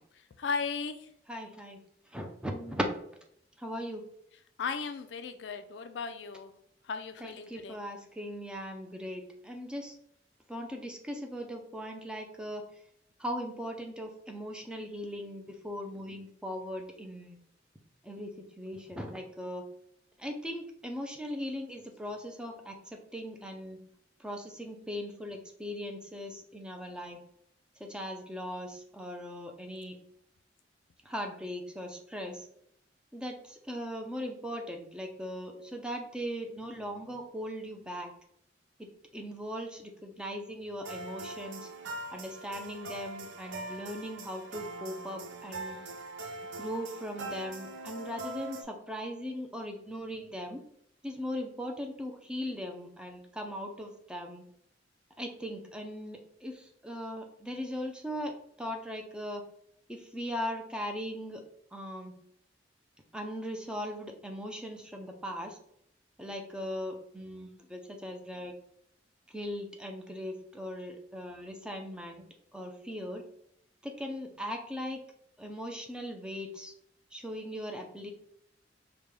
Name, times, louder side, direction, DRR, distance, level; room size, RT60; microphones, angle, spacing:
voice 1, 0.1-1.1 4.6-6.5 6.8-7.8, left 5 dB, 65° left, 9 dB, 0.3 m, -36 dB
voice 2, 1.3-1.8 2.1-2.9 3.6-4.0 7.2-10.0 10.5-12.6 13.2-17.4 18.0-18.3 18.6-19.6 20.2-23.8 24.2-27.2 27.8-30.0 31.1-32.5 33.1-38.1 38.8-41.7 42.1-45.8 46.5-50.6 51.0-54.4 55.2-59.4 59.9-61.4 61.7-62.1 63.1-65.6 66.2-68.5 69.3-72.2 72.5-73.2 73.8-75.0 75.4-76.7 77.1-78.1, equal, 5° right, 3 dB, 0.4 m, -39 dB
sound 1, 40.8-48.6, right 2 dB, 90° right, 0.5 m, -42 dB
5.1 x 2.2 x 3.1 m, 0.70 s
head